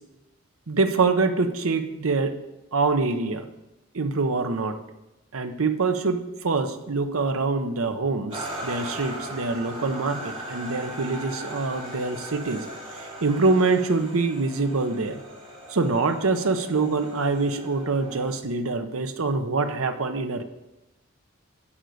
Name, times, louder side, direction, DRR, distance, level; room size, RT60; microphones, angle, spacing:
voice 1, 0.7-2.4 2.7-3.5 3.9-4.8 5.3-12.6 13.0-15.2 15.7-20.4, right 3 dB, 90° right, 8 dB, 0.9 m, -25 dB
sound 1, 8.3-18.3, right 1 dB, 25° right, 3.6 m, -38 dB
11.0 x 5.3 x 6.4 m, 1.0 s
head